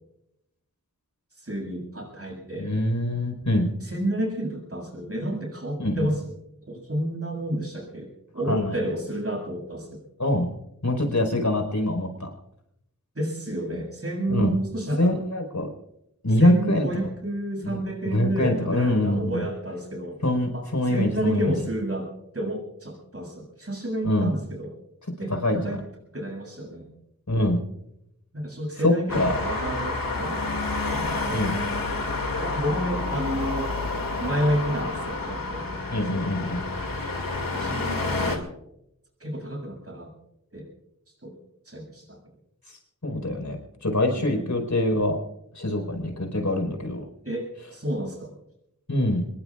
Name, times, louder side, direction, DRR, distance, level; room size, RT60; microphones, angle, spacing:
voice 1, 1.4-2.7 3.8-6.2 6.7-10.1 13.2-15.1 16.4-20.2 20.5-22.1 22.3-24.7 25.2-25.8 26.1-26.9 28.3-30.6 30.8-31.5 32.4-33.7 34.2-36.7 37.5-38.4 39.2-40.1 40.5-40.7 41.2-41.4 41.7-42.2 44.1-44.5 47.2-48.3, right 1 dB, 45° right, 1 dB, 7.2 m, -30 dB
voice 2, 2.6-3.7 5.8-6.1 8.5-8.8 10.2-10.5 10.8-12.3 14.3-14.5 15.0-15.7 16.2-16.9 17.6-17.8 18.0-19.4 20.2-21.5 24.0-24.3 25.3-25.8 27.3-27.6 28.8-29.4 31.3-31.5 35.9-36.6 42.7-43.6 43.8-45.2 45.5-47.0 48.9-49.3, left 1 dB, 60° left, 4 dB, 4.8 m, -24 dB
Traffic noise roadway noise, 29.1-38.4, left 3 dB, 80° left, 2.5 m, -29 dB
26.5 x 21.0 x 2.5 m, 0.82 s
wide cardioid pair, 55°, 34 cm